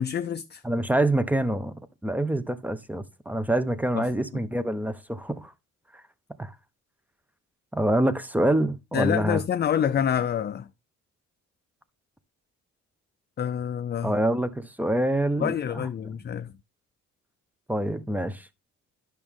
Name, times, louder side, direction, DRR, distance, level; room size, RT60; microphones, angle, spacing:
voice 1, 0.0-0.6 4.0-4.1 8.9-10.7 13.4-14.2 15.4-16.5, left 8 dB, 35° left, 0.5 m, -27 dB
voice 2, 0.6-1.7 2.0-5.5 6.4-6.5 7.7-9.4 14.0-15.8 17.7-18.5, right 1 dB, 5° right, 1.0 m, -26 dB
11.0 x 6.1 x 3.6 m
cardioid pair, 90°, 30 cm